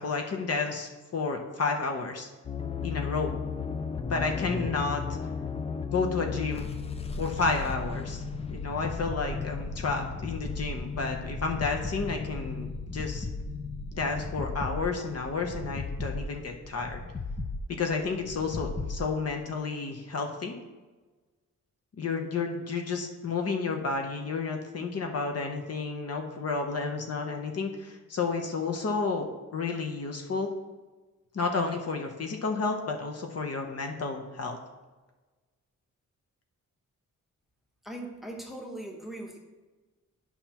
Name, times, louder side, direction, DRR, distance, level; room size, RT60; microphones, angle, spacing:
voice 1, 0.0-2.3 2.8-3.3 4.1-5.0 5.9-6.7 7.2-8.2 8.5-13.3 13.9-17.0 17.7-20.5 21.9-30.5 31.3-34.6, left 4 dB, 50° left, 3 dB, 0.8 m, -31 dB
sound 1, 2.4-19.1, left 4 dB, 20° left, 0.3 m, -35 dB
voice 2, 37.8-39.4, right 1 dB, ahead, 0 dB, 0.9 m, -40 dB
11.0 x 5.6 x 2.9 m, 1.2 s
wide cardioid pair, 170°, 31 cm